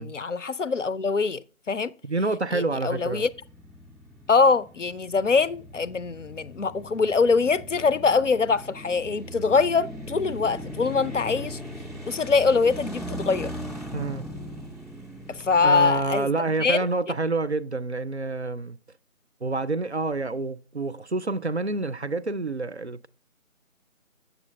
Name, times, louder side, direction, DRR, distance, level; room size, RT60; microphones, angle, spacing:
voice 1, 0.0-1.9 2.5-3.3 4.3-11.6 12.1-13.5 15.3-16.3 16.6-16.9, left 4 dB, 65° left, 0.5 m, -23 dB
voice 2, 2.0-3.3 13.9-14.3 15.6-18.8 19.4-23.1, right 3 dB, 55° right, 0.5 m, -28 dB
sound 1, 3.0-16.2, equal, ahead, 0.5 m, -39 dB
7.6 x 7.1 x 3.2 m
figure-of-eight pair, 160°, 41 cm